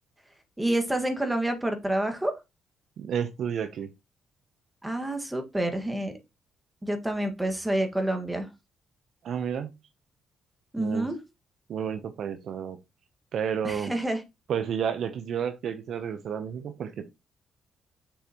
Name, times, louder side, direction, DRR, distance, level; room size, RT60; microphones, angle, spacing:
voice 1, 0.6-2.3 4.8-6.1 6.8-8.5 10.7-11.2 13.6-14.2, right 1 dB, 10° right, 1.6 m, -28 dB
voice 2, 3.0-3.9 9.2-9.7 10.8-11.1 11.7-12.8 13.3-13.9 14.5-17.1, right 8 dB, 65° right, 0.7 m, -31 dB
6.4 x 6.3 x 2.9 m
cardioid pair, 90°, 0 cm